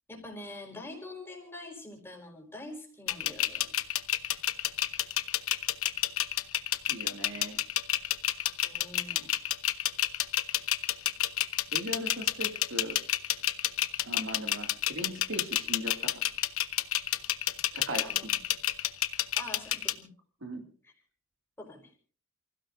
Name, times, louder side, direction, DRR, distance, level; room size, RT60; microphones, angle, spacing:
voice 1, 0.1-3.7 8.6-9.3 18.0-18.3 19.4-20.1 20.8-20.9 21.6-21.8, left 2 dB, 10° left, 1 dB, 4.7 m, -45 dB
sound 1, 3.1-19.9, left 13 dB, 80° left, 1.0 m, -29 dB
voice 2, 6.9-7.6 11.7-13.0 14.0-16.1 17.7-18.3 20.4-20.6, equal, 65° right, 5 dB, 2.4 m, -38 dB
29.0 x 16.0 x 2.6 m, 0.43 s
head